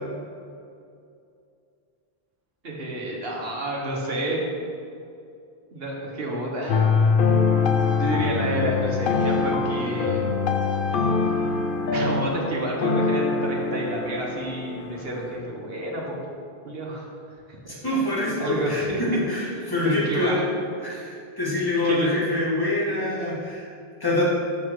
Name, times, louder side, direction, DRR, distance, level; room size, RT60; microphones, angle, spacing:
voice 1, 2.6-4.4 5.7-6.9 7.9-10.3 11.9-16.2 16.6-17.1 17.5-17.7 18.4-19.2 19.5-20.6 21.8-22.1, right 1 dB, 65° right, -2 dB, 1.6 m, -30 dB
sound 1, 6.7-15.4, left 4 dB, 60° left, 0.8 m, -24 dB
voice 2, 17.8-20.4 20.8-23.7 24.0-24.2, left 1 dB, 20° left, -7 dB, 2.1 m, -25 dB
7.1 x 5.9 x 4.8 m, 2.5 s
omnidirectional pair, 1.1 m